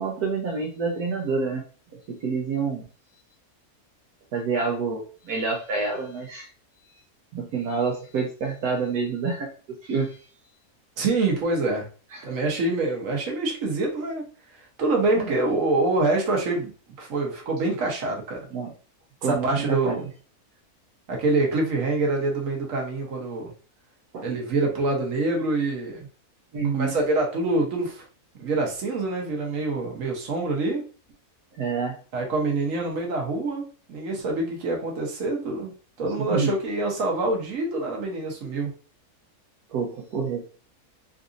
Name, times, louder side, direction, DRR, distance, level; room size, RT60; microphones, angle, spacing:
voice 1, 0.0-1.6 2.1-2.8 4.3-6.5 7.3-9.5 9.8-10.2 12.1-12.3 15.2-15.3 18.5-18.7 19.2-20.0 24.1-24.3 26.5-26.9 31.6-32.0 36.3-36.5 39.7-40.4, right 4 dB, 80° right, 0 dB, 1.2 m, -27 dB
voice 2, 11.0-11.9 12.2-14.2 14.8-16.7 17.0-18.5 19.2-20.1 21.1-23.5 24.2-26.1 26.7-28.0 28.3-30.8 32.1-35.7 36.0-38.7, right 2 dB, 60° right, 0 dB, 1.4 m, -25 dB
3.9 x 2.5 x 2.6 m, 0.38 s
omnidirectional pair, 1.6 m